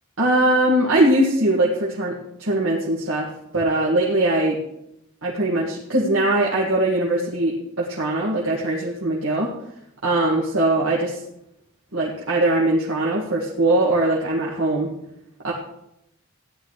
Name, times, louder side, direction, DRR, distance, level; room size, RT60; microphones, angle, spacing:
voice 1, 0.2-3.3 3.5-4.6 5.2-9.5 10.0-11.2 11.9-14.9 15.4-15.5, right 1 dB, 70° right, -5 dB, 1.9 m, -21 dB
15.5 x 10.5 x 3.2 m, 0.81 s
head